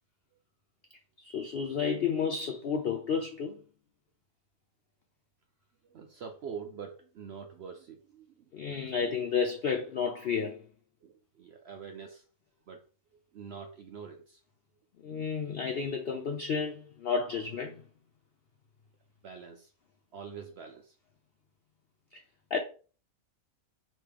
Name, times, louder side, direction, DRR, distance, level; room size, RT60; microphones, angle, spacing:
voice 1, 1.2-3.6 8.5-10.6 15.0-17.8 22.1-22.2 22.5-22.6, left 6 dB, 75° left, 0.5 m, -31 dB
voice 2, 5.9-8.8 11.0-12.2 12.7-12.8 13.1-14.4 19.2-19.7 20.1-21.0, right 6 dB, 70° right, 0.6 m, -45 dB
5.0 x 3.1 x 3.3 m
omnidirectional pair, 1.6 m